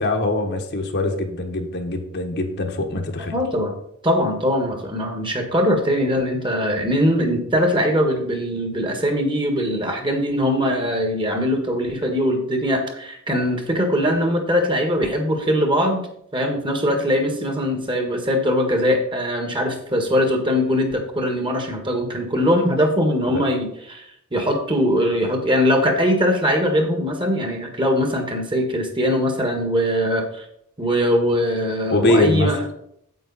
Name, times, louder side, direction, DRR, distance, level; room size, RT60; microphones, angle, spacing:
voice 1, 0.0-3.3 23.3-23.4 31.9-32.5, left 1 dB, 50° left, 3 dB, 1.3 m, -22 dB
voice 2, 3.3-3.8 4.0-16.0 16.3-24.0 24.3-30.5 30.8-32.6, equal, 20° right, 4 dB, 1.6 m, -21 dB
9.3 x 8.0 x 4.1 m, 0.71 s
head